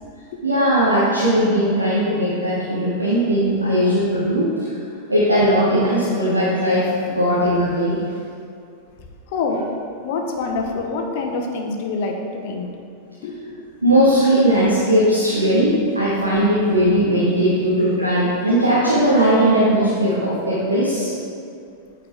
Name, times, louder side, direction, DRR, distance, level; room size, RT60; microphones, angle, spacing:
voice 1, 0.4-4.7 5.1-8.0 13.8-21.1, equal, 80° right, -9 dB, 1.2 m, -18 dB
voice 2, 9.3-9.6 10.0-12.7 13.2-13.6, left 3 dB, 50° left, 2 dB, 0.9 m, -26 dB
8.6 x 4.6 x 3.7 m, 2.4 s
figure-of-eight pair, 90°, 0 cm